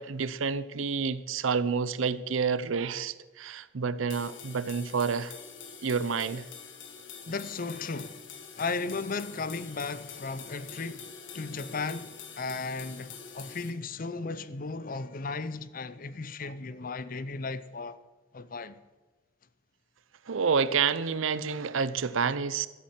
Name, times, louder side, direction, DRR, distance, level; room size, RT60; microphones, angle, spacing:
voice 1, 0.0-5.4 5.8-6.5 16.4-16.5 20.3-22.7, right 5 dB, 80° right, 0.6 m, -29 dB
sound 1, 4.1-13.7, left 6 dB, 70° left, 1.5 m, -46 dB
voice 2, 7.3-8.3 8.6-18.0 18.3-18.8, left 4 dB, 45° left, 0.5 m, -35 dB
12.5 x 8.6 x 7.4 m
head